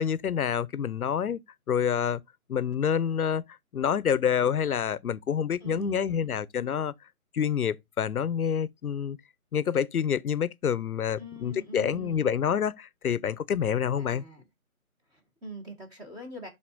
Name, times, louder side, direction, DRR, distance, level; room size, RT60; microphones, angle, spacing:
voice 1, 0.0-1.4 1.7-2.2 2.5-3.4 3.7-6.9 7.3-9.2 9.5-14.2, left 8 dB, 85° left, 0.8 m, -27 dB
voice 2, 5.6-6.4 11.2-12.3 14.0-14.4 15.1-16.5, right 1 dB, 10° right, 1.5 m, -43 dB
11.5 x 4.1 x 2.5 m
hypercardioid pair, 155°, 42 cm